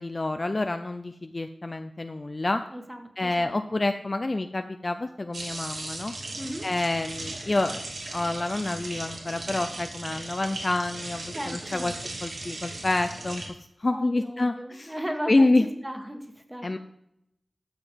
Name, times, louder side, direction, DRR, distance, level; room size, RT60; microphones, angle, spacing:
voice 1, 0.0-2.6 3.2-6.1 6.6-7.8 8.1-11.9 12.2-13.4 13.8-14.9 15.3-15.6 16.6-16.8, left 2 dB, 35° left, 8 dB, 0.6 m, -27 dB
voice 2, 2.7-3.5 6.3-6.7 11.3-12.0 13.9-16.8, equal, 10° right, 5 dB, 1.6 m, -36 dB
sound 1, 5.3-13.5, right 2 dB, 65° right, 2.7 m, -37 dB
12.5 x 7.0 x 5.2 m, 0.80 s
wide cardioid pair, 100°, 0 cm